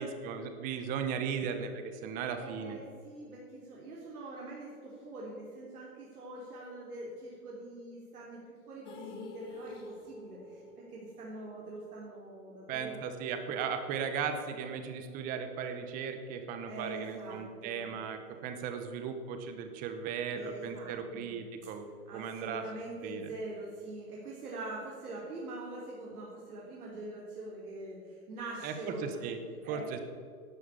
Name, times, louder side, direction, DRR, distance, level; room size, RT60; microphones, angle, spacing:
voice 1, 0.0-2.8 12.7-22.6 23.0-23.3 28.6-30.0, right 6 dB, 20° right, 7 dB, 1.0 m, -37 dB
voice 2, 2.4-10.6 10.9-13.0 16.7-17.9 20.3-21.4 22.1-29.3 29.6-29.8, right 2 dB, 70° right, -5 dB, 3.6 m, -44 dB
sound 1, 8.9-13.0 13.2-13.3 13.7-13.8, left 3 dB, 10° left, 0.6 m, -48 dB
12.0 x 9.3 x 7.1 m, 2.2 s
hypercardioid pair, 145°, 46 cm